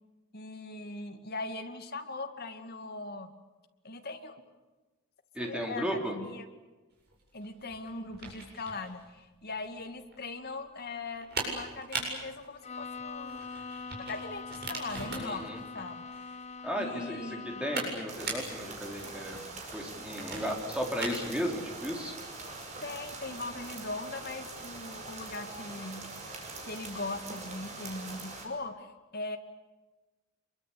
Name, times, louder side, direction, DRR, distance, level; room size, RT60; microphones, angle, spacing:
voice 1, 0.3-3.3 3.8-4.4 5.4-6.5 7.3-13.5 14.1-16.1 16.7-17.7 22.8-26.1 26.6-29.4, left 2 dB, 45° left, 6 dB, 2.3 m, -40 dB
voice 2, 5.3-6.2 15.2-15.6 16.6-19.4 19.7-22.1, equal, 5° right, 1 dB, 4.0 m, -35 dB
sound 1, 7.0-24.4, right 3 dB, 50° right, 7.9 m, -42 dB
Bowed string instrument, 12.6-18.1, left 4 dB, 30° left, 0.8 m, -43 dB
sound 2, 18.1-28.5, right 3 dB, 30° right, 5.5 m, -43 dB
26.5 x 23.0 x 8.6 m, 1.2 s
head